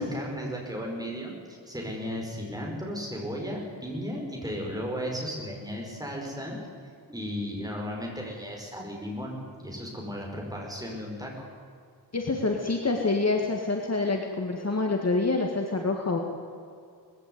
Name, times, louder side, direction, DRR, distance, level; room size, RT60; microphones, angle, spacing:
voice 1, 0.0-6.6 7.1-11.3, equal, 10° right, -1 dB, 5.3 m, -35 dB
voice 2, 12.1-16.2, left 3 dB, 35° left, 2 dB, 1.9 m, -27 dB
20.0 x 15.5 x 9.6 m, 2.3 s
wide cardioid pair, 155°, 46 cm